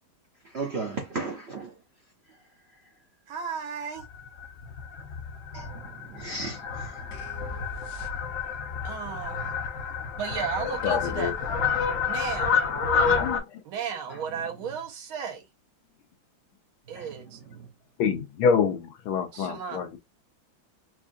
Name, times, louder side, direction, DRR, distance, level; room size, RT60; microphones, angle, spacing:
voice 1, 0.4-1.7 5.5-7.1 12.9-13.4 14.1-14.2 16.9-17.2 17.5-17.7, right 3 dB, 50° right, 0.7 m, -36 dB
voice 2, 3.3-4.0 8.8-9.5 10.1-11.3 12.1-12.5 13.7-15.4 16.9-17.4 19.3-19.9, right 7 dB, 90° right, 1.8 m, -34 dB
Fowl, 4.0-13.4, left 6 dB, 55° left, 0.9 m, -29 dB
sound 1, 7.1-8.7, right 1 dB, 70° left, 1.6 m, -42 dB
voice 3, 10.8-11.3 13.1-13.6 18.0-20.0, left 6 dB, 90° left, 1.7 m, -26 dB
4.8 x 2.4 x 2.6 m
omnidirectional pair, 2.2 m